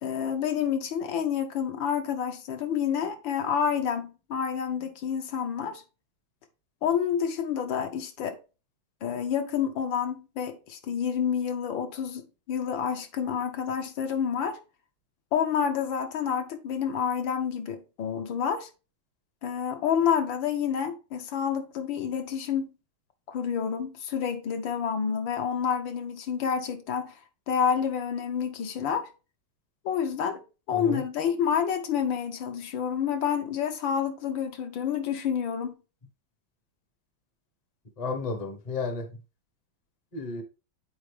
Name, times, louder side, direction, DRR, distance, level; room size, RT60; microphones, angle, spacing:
voice 1, 0.0-5.8 6.8-8.4 9.0-14.6 15.3-18.7 19.4-22.7 23.3-27.2 27.5-29.1 29.8-30.4 30.7-35.8, left 7 dB, 75° left, 1.7 m, -28 dB
voice 2, 30.7-31.0 38.0-39.1 40.1-40.4, left 3 dB, 30° left, 0.7 m, -32 dB
8.5 x 4.3 x 3.2 m
omnidirectional pair, 2.1 m